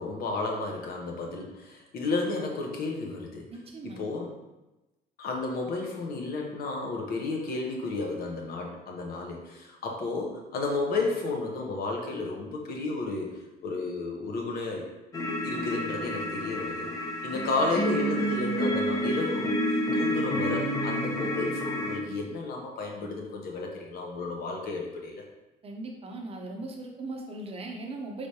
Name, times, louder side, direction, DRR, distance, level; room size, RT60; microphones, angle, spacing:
voice 1, 0.0-3.5 3.8-4.3 5.2-14.8 15.4-16.9 17.2-25.2, left 3 dB, 65° left, 0 dB, 0.9 m, -32 dB
voice 2, 3.5-4.0 25.6-28.3, right 2 dB, 35° right, 1 dB, 0.8 m, -39 dB
sound 1, 15.1-22.0, equal, 20° left, 0.6 m, -29 dB
4.7 x 3.4 x 2.8 m, 1.0 s
cardioid pair, 110°, 17 cm